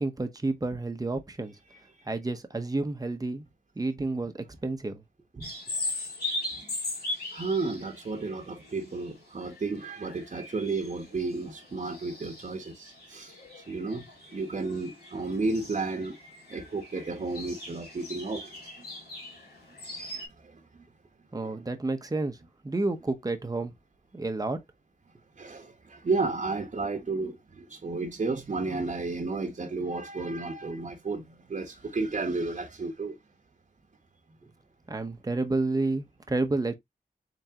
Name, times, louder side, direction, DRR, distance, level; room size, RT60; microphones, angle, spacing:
voice 1, 0.0-1.5 2.1-3.4 3.8-5.0 5.3-5.4 21.3-22.4 22.6-23.7 24.1-24.6 34.4-34.5 34.9-36.8, right 2 dB, 25° right, 0.8 m, -30 dB
sound 1, 5.4-20.3, left 2 dB, 90° left, 2.6 m, -40 dB
voice 2, 7.3-13.3 13.7-16.2 16.5-18.5 20.0-20.8 21.4-21.7 25.4-33.2, right 3 dB, 45° right, 1.0 m, -33 dB
3.9 x 3.5 x 2.8 m
wide cardioid pair, 90°, 16 cm